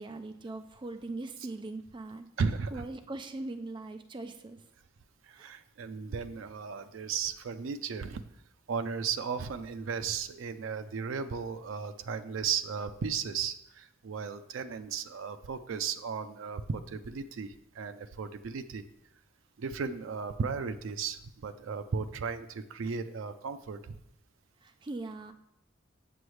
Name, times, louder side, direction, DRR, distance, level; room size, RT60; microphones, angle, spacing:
voice 1, 0.0-2.3 2.7-4.6 5.4-5.5 24.6-25.3, right 2 dB, 25° right, 8 dB, 0.4 m, -40 dB
voice 2, 2.4-2.9 5.2-8.2 8.7-18.8 19.6-24.0, right 6 dB, 85° right, 10 dB, 0.4 m, -35 dB
7.8 x 6.9 x 3.2 m, 0.84 s
head